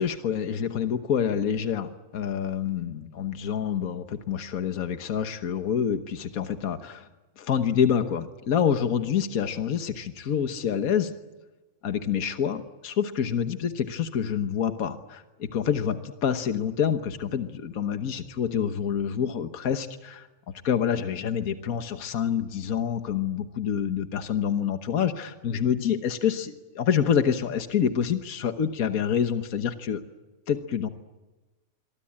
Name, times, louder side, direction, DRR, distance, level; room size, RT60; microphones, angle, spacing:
voice 1, 0.0-7.1 7.4-11.1 11.8-20.3 20.6-30.0 30.5-30.9, left 8 dB, 75° left, 8 dB, 1.6 m, -27 dB
26.0 x 23.5 x 8.7 m, 1.2 s
omnidirectional pair, 1.5 m